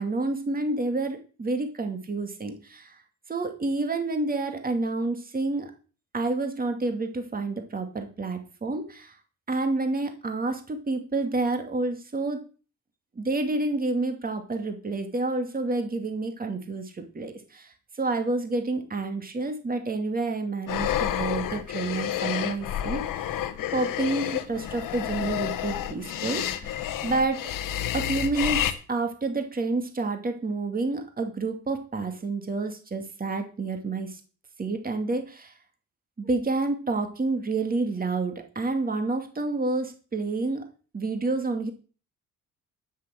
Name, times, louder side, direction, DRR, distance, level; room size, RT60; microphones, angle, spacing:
voice 1, 0.0-3.0 3.3-5.7 6.1-9.2 9.5-12.5 13.2-23.4 23.7-27.5 27.9-34.2 34.6-35.5 36.2-40.7 40.9-41.7, right 3 dB, 25° right, 6 dB, 2.4 m, -29 dB
sound 1, 20.7-28.7, left 11 dB, 75° left, 1.4 m, -30 dB
11.5 x 6.8 x 7.7 m, 0.36 s
cardioid pair, 85°, 33 cm